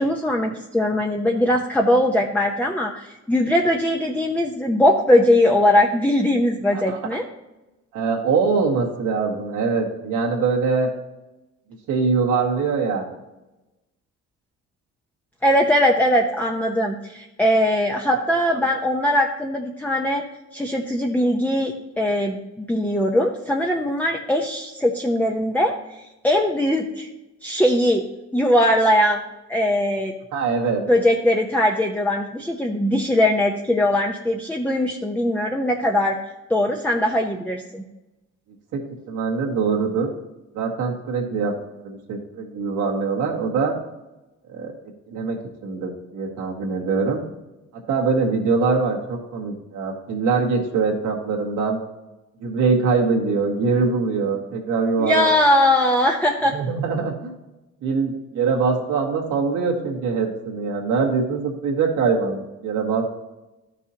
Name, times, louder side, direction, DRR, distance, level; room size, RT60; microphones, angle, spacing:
voice 1, 0.0-7.3 15.4-20.2 20.5-27.1 27.4-28.0 28.3-29.2 29.5-30.1 30.8-36.2 36.5-37.8 55.0-56.6, left 1 dB, 5° left, 1 dB, 0.8 m, -20 dB
voice 2, 7.9-10.9 11.9-13.1 18.5-18.6 30.3-30.8 38.7-38.8 39.1-40.1 40.5-41.5 41.8-43.8 44.5-44.7 45.1-45.4 45.6-47.2 47.9-51.8 52.4-55.3 56.5-57.3 57.8-63.1, right 4 dB, 85° right, -1 dB, 1.9 m, -23 dB
12.5 x 6.1 x 2.9 m, 1.0 s
cardioid pair, 90°, 30 cm